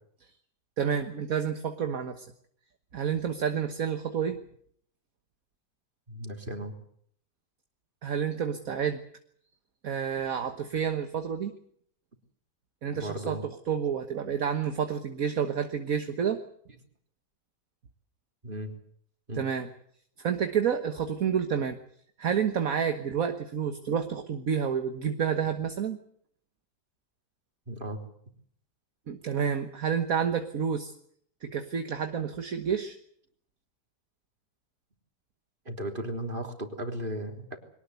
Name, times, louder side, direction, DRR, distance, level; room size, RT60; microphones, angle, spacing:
voice 1, 0.8-2.2 2.9-4.4 8.0-9.0 9.8-11.5 12.8-16.4 19.4-19.7 20.2-21.8 22.2-26.0 29.1-30.9 31.4-32.9, right 7 dB, 60° right, 7 dB, 1.7 m, -29 dB
voice 2, 6.1-6.8 12.9-13.4 18.4-18.7 19.3-19.4 27.7-28.0 35.7-37.6, right 1 dB, 30° right, 4 dB, 3.7 m, -35 dB
23.0 x 18.5 x 8.1 m, 0.64 s
omnidirectional pair, 1.7 m